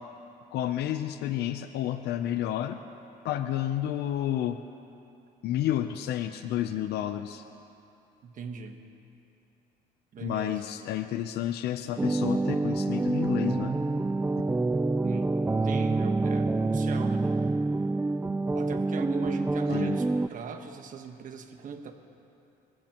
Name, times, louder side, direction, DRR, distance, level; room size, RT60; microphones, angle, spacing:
voice 1, 0.5-2.8 3.2-4.6 5.4-7.4 10.2-13.8 19.7-20.0, left 11 dB, 75° left, 9 dB, 0.6 m, -30 dB
voice 2, 8.2-8.8 10.1-10.6 15.0-15.3 15.6-17.4 18.5-21.9, right 6 dB, 50° right, 5 dB, 1.3 m, -39 dB
sound 1, 12.0-20.3, right 3 dB, 10° right, 0.3 m, -27 dB
27.0 x 15.5 x 3.0 m, 2.8 s
cardioid pair, 110°, 17 cm